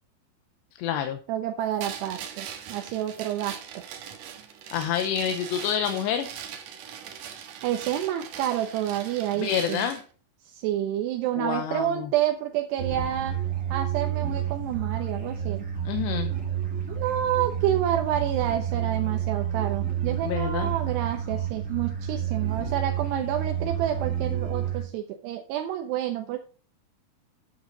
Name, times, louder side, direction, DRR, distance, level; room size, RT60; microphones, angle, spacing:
voice 1, 0.8-1.2 4.7-6.3 9.4-10.0 11.4-12.1 15.9-16.3 20.2-20.7, left 9 dB, 85° left, 7 dB, 3.1 m, -28 dB
voice 2, 1.3-3.6 7.6-9.9 10.5-13.4 13.7-15.7 16.9-26.4, right 11 dB, 80° right, 5 dB, 3.0 m, -29 dB
sound 1, 1.8-10.0, right 8 dB, 65° right, 2.5 m, -41 dB
sound 2, 12.8-24.8, right 9 dB, 20° right, 3.0 m, -29 dB
9.7 x 8.4 x 3.9 m, 0.38 s
omnidirectional pair, 4.8 m